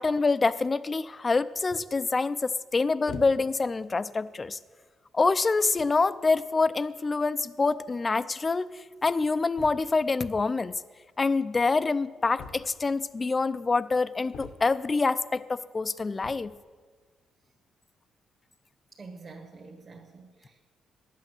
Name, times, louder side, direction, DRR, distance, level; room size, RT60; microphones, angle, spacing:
voice 1, 0.0-4.6 5.1-8.7 9.0-10.8 11.2-16.5, left 3 dB, 30° left, 15 dB, 0.5 m, -26 dB
sound 1, 3.1-3.7 4.4-4.6 5.4-5.5 5.7-6.1 7.3-7.4 7.6-7.7 7.9-8.0 9.5-10.1 12.4-13.0 14.3-15.0 16.1-16.6, left 5 dB, 75° left, 1.1 m, -44 dB
voice 2, 18.9-20.6, right 4 dB, 40° right, 0 dB, 1.6 m, -47 dB
11.0 x 8.3 x 7.9 m, 1.5 s
cardioid pair, 90°, 0 cm